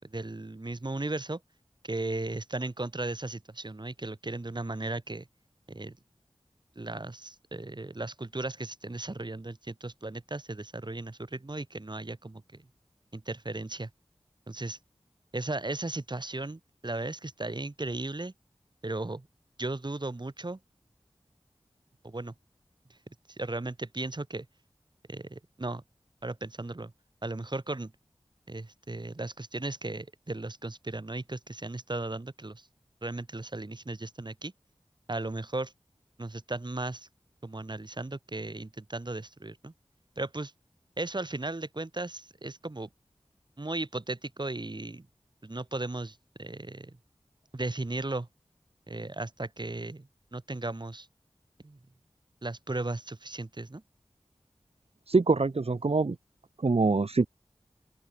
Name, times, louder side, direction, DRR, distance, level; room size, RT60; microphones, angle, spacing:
voice 1, 0.0-1.4 1.8-5.3 5.7-5.9 6.8-12.7 13.1-13.9 14.5-14.8 15.3-18.3 18.8-19.3 19.6-20.6 22.0-22.3 23.4-24.5 25.1-25.8 26.2-26.9 27.2-27.9 28.5-32.7 33.0-34.5 35.1-35.7 36.2-37.1 37.4-39.7 40.2-40.5 41.0-42.9 43.6-45.1 45.4-47.0 47.5-48.3 48.9-51.1 51.6-51.8 52.4-53.8, right 2 dB, 45° right, 5.7 m, -36 dB
voice 2, 55.1-56.1 56.6-57.3, right 3 dB, 70° right, 1.8 m, -24 dB
open air
wide cardioid pair, 60°, 11 cm